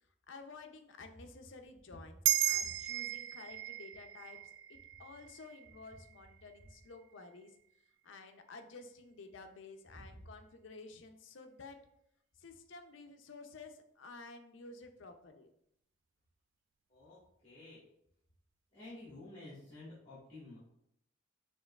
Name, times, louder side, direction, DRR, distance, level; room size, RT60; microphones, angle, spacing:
voice 1, 0.3-2.2 2.5-4.4 4.7-7.6 8.0-11.8 12.4-15.5, left 3 dB, 75° left, 6 dB, 0.6 m, -52 dB
sound 1, 2.2-7.0, right 12 dB, 70° right, 0.3 m, -36 dB
voice 2, 16.9-17.8 18.7-20.6, left 2 dB, 30° left, -10 dB, 1.7 m, -51 dB
6.6 x 3.0 x 2.4 m, 0.74 s
head